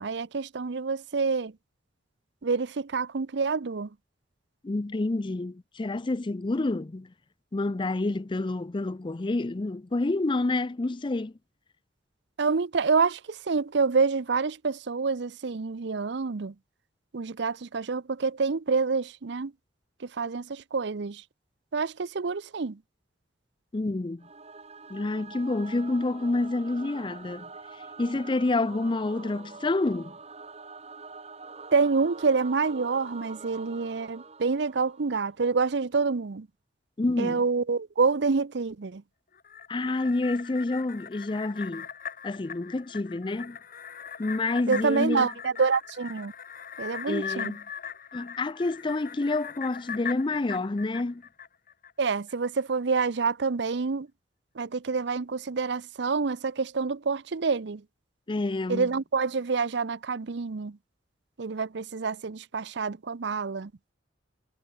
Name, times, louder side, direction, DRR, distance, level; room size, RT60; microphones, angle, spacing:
voice 1, 0.0-1.5 2.4-3.9 12.4-16.5 17.1-19.5 20.0-21.2 21.7-22.8 31.7-36.5 37.2-39.0 44.7-46.3 46.8-47.5 52.0-54.1 54.6-57.8 58.7-60.8 61.4-63.7, right 4 dB, 65° right, 0.6 m, -27 dB
voice 2, 4.6-7.1 7.5-11.3 23.7-24.3 24.9-27.5 28.0-30.2 37.0-37.4 39.7-41.9 42.2-43.6 44.2-45.3 47.1-47.6 48.1-51.2 58.3-58.9, left 2 dB, 25° left, 0.5 m, -28 dB
Singing / Musical instrument, 24.2-35.5, right 4 dB, 35° right, 6.1 m, -45 dB
sound 1, 39.3-51.9 52.3-52.4, left 8 dB, 50° left, 2.7 m, -40 dB
head